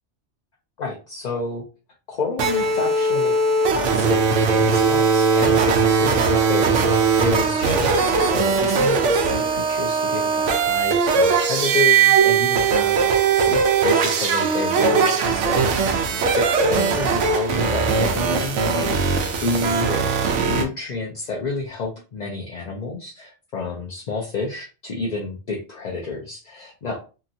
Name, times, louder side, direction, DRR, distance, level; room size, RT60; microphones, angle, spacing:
voice 1, 0.8-1.6 2.1-3.3 3.7-27.0, left 3 dB, 50° left, -2 dB, 0.5 m, -30 dB
sound 1, 2.4-20.7, right 5 dB, 85° right, 0.9 m, -19 dB
2.9 x 2.5 x 2.6 m, 0.33 s
omnidirectional pair, 1.2 m